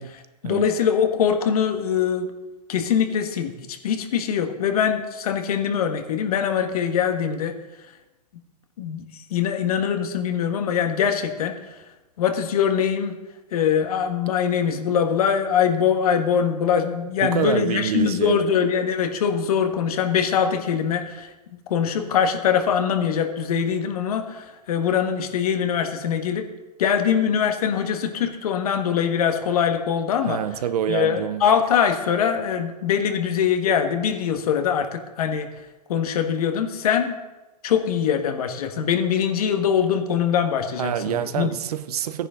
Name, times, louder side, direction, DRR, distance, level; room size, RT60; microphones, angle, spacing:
voice 1, 0.0-2.3 2.7-7.6 8.8-11.5 12.2-13.2 13.5-21.3 21.7-26.5 26.8-30.4 30.9-35.5 35.9-37.2 37.6-41.5, left 8 dB, 60° left, 1.7 m, -23 dB
voice 2, 17.2-18.5 30.2-31.5 40.8-42.3, right 9 dB, 65° right, 0.8 m, -26 dB
14.5 x 9.9 x 3.8 m
hypercardioid pair, 130°, 21 cm